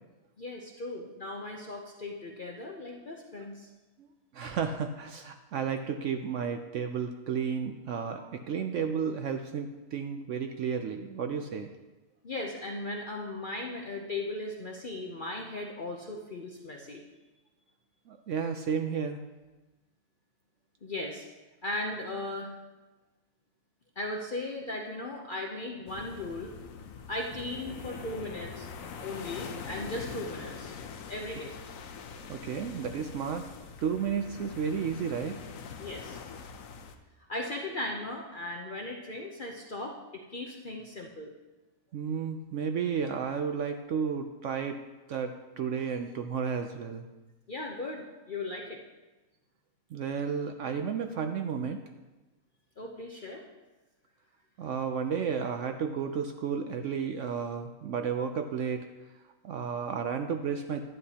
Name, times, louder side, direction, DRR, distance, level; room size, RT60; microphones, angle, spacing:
voice 1, 0.4-3.7 12.2-17.0 20.8-21.2 21.6-22.5 24.0-26.5 27.1-28.7 29.0-30.7 31.1-31.5 35.8-36.2 37.3-41.3 47.5-48.8 52.8-53.4, left 2 dB, 45° left, 0 dB, 0.7 m, -37 dB
voice 2, 4.3-11.7 18.1-19.2 32.3-33.5 33.8-35.4 41.9-44.8 45.1-47.1 49.9-51.8 54.6-58.9 59.4-60.8, right 6 dB, 65° right, 6 dB, 0.8 m, -32 dB
sound 1, 25.9-37.0, left 6 dB, 70° left, 1.0 m, -43 dB
11.0 x 9.8 x 2.8 m, 1.1 s
omnidirectional pair, 1.6 m